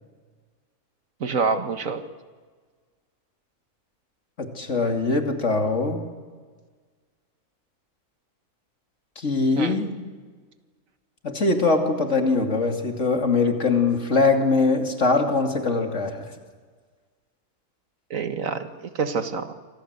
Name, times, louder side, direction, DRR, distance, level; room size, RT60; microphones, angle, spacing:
voice 1, 1.2-2.0 9.6-9.8 18.1-19.5, right 5 dB, 70° right, 9 dB, 2.0 m, -27 dB
voice 2, 4.4-6.0 9.2-9.9 11.2-16.3, left 3 dB, 60° left, 4 dB, 3.0 m, -22 dB
27.5 x 25.5 x 8.2 m, 1.5 s
omnidirectional pair, 1.4 m